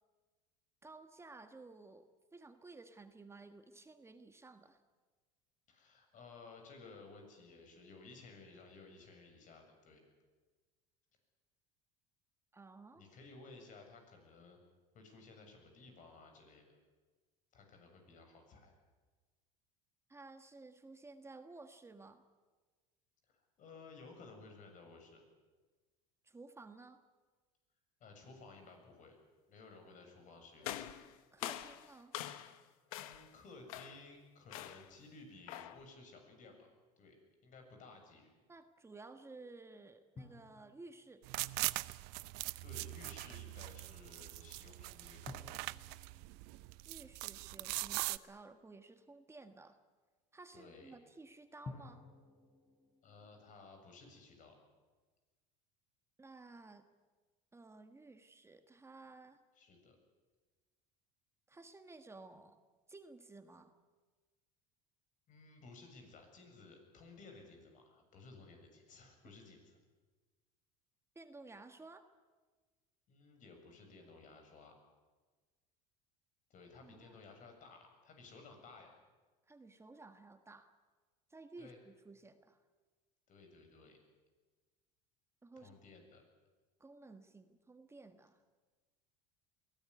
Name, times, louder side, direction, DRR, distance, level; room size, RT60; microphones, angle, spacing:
voice 1, 0.8-4.8 12.5-13.0 20.1-22.2 26.2-27.0 31.3-32.1 38.5-41.2 46.9-49.8 50.3-52.0 56.2-56.8 57.5-59.4 61.5-62.6 62.9-63.7 71.1-72.1 76.8-77.2 79.5-80.7 81.3-82.6 85.4-85.8 86.8-88.4, right 3 dB, 15° right, 8 dB, 1.5 m, -55 dB
voice 2, 5.7-10.0 12.9-14.6 14.9-16.8 17.5-18.7 23.2-25.2 28.0-29.2 29.5-30.9 33.0-36.7 37.0-37.2 37.4-38.3 42.6-45.6 50.5-51.0 53.0-54.6 59.5-60.0 65.3-69.8 73.1-74.7 76.5-78.9 81.6-81.8 83.3-84.0 85.6-86.2, left 3 dB, 45° left, 4 dB, 7.3 m, -56 dB
sound 1, 30.6-32.6 32.9-33.3 33.7-34.1 34.5-34.9 35.5-35.8, left 13 dB, 85° left, 1.4 m, -45 dB
sound 2, 40.2-42.4 45.3-48.2 51.6-53.5, left 3 dB, 30° left, 5.4 m, -55 dB
sound 3, 41.2-48.2, right 23 dB, 70° right, 0.7 m, -41 dB
22.5 x 17.5 x 9.7 m, 1.3 s
supercardioid pair, 110°, 18 cm